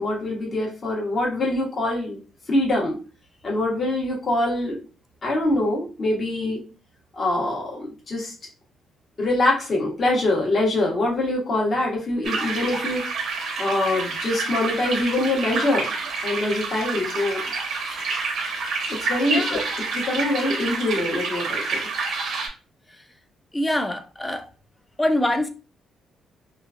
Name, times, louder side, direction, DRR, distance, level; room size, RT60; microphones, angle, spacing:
voice 1, 0.0-2.2 2.5-2.9 3.4-4.8 5.2-6.6 7.1-8.3 9.2-13.0 13.6-15.9 16.2-17.4 19.1-19.6 19.9-21.6, left 1 dB, 40° left, -3 dB, 1.2 m, -24 dB
sound 1, 12.2-22.5, right 4 dB, 70° right, 0.8 m, -28 dB
voice 2, 19.3-19.7 23.5-24.5 25.0-25.5, left 1 dB, 15° left, 7 dB, 0.4 m, -24 dB
3.0 x 2.3 x 2.5 m, 0.34 s
cardioid pair, 90°, 0 cm